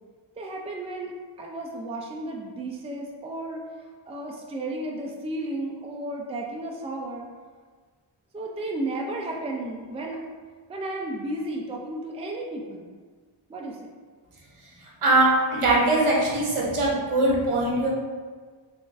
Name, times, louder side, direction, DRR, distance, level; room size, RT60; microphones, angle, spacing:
voice 1, 0.4-1.1 1.4-3.6 4.1-7.3 8.3-10.2 10.7-12.9 13.5-13.9, right 1 dB, 15° right, 0 dB, 0.3 m, -33 dB
voice 2, 15.0-17.9, right 2 dB, 85° right, -4 dB, 0.9 m, -21 dB
3.7 x 2.5 x 2.5 m, 1.5 s
wide cardioid pair, 75°, 49 cm